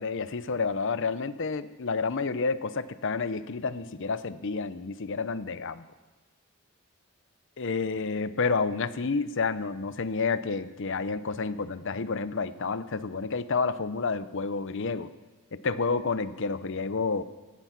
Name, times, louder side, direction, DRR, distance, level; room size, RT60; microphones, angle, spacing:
voice 1, 0.0-5.8 7.6-15.1 15.5-17.2, left 4 dB, 55° left, 13 dB, 0.7 m, -30 dB
17.5 x 14.0 x 5.9 m, 1.2 s
head